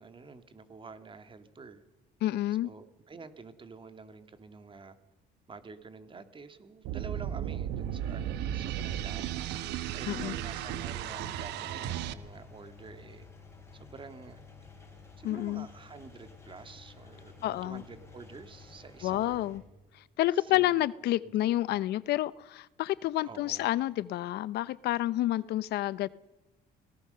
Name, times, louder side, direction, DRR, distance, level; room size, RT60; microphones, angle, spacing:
voice 1, 0.0-1.8 2.6-5.0 5.5-13.3 13.7-14.4 15.2-19.5 20.3-20.8 21.2-21.3 21.7-21.8 23.2-23.7, right 4 dB, 30° right, 2.2 m, -48 dB
voice 2, 2.2-2.7 10.1-10.3 15.2-15.7 17.4-17.8 19.0-19.6 19.9-26.1, left 15 dB, 75° left, 0.7 m, -29 dB
sound 1, 6.8-12.1, right 11 dB, 85° right, 1.2 m, -35 dB
Engine, 10.2-19.6, left 4 dB, 15° left, 6.5 m, -52 dB
24.5 x 18.5 x 6.8 m
cardioid pair, 110°, 17 cm